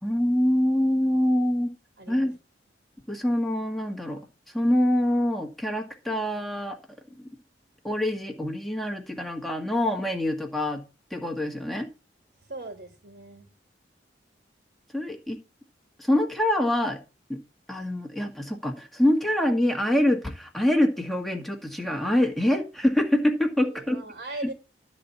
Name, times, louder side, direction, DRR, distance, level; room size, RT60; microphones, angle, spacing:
voice 1, 0.0-1.7 2.1-2.3 3.1-4.2 4.5-6.8 7.2-7.3 7.8-10.8 11.1-11.9 14.9-15.4 16.0-17.0 17.3-17.4 17.7-24.0, left 1 dB, ahead, 1.5 m, -25 dB
voice 2, 2.0-2.3 12.5-13.5 23.6-24.5, right 2 dB, 65° right, 2.8 m, -39 dB
12.0 x 4.2 x 8.2 m
head